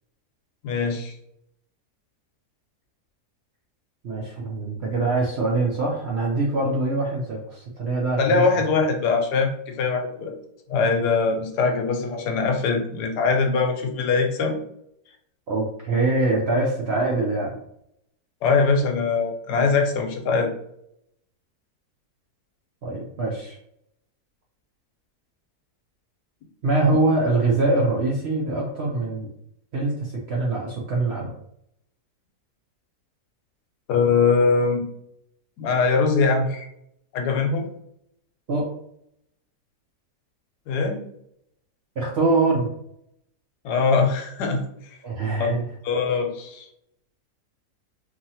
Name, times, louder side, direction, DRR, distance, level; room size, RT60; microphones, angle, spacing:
voice 1, 0.6-1.1 8.2-10.3 10.7-14.6 18.4-20.5 33.9-34.8 35.6-36.7 37.1-37.6 40.7-41.0 43.6-44.6 45.4-45.5 45.8-46.7, left 4 dB, 90° left, 3 dB, 1.2 m, -22 dB
voice 2, 4.0-8.5 15.5-17.6 22.8-23.6 26.6-29.3 29.7-31.3 38.5-38.7 42.0-42.7 45.0-45.6, right 2 dB, 65° right, -2 dB, 0.6 m, -23 dB
2.8 x 2.7 x 2.7 m, 0.74 s
omnidirectional pair, 1.7 m